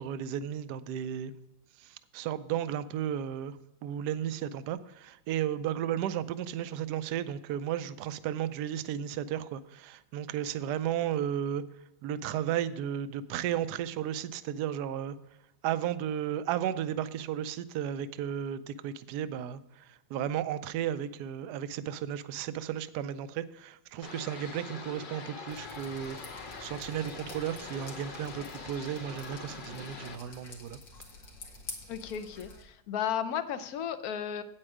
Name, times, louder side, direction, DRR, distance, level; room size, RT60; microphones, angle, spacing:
voice 1, 0.0-1.3 2.1-3.6 3.8-11.6 12.0-15.1 15.6-19.6 20.1-26.2 26.6-30.8, right 10 dB, 70° right, 1.1 m, -34 dB
sound 1, 24.0-30.2, left 4 dB, 50° left, 0.6 m, -44 dB
Drip, 25.5-32.6, left 3 dB, 85° left, 2.4 m, -49 dB
voice 2, 31.9-34.4, left 8 dB, 65° left, 1.1 m, -34 dB
8.8 x 8.8 x 4.9 m
omnidirectional pair, 2.0 m